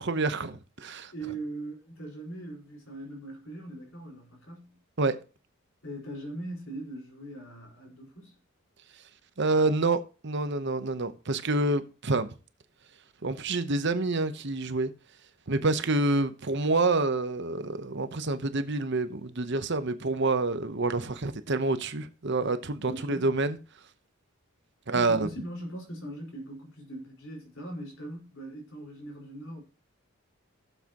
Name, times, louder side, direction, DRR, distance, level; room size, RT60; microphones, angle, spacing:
voice 1, 0.0-1.1 5.0-5.2 9.4-12.3 13.2-14.9 15.5-23.6 24.9-25.3, right 3 dB, 55° right, 0.9 m, -27 dB
voice 2, 1.1-4.8 5.8-8.3 22.8-23.3 24.9-29.6, right 1 dB, 60° left, 4.7 m, -40 dB
15.5 x 7.5 x 3.0 m
head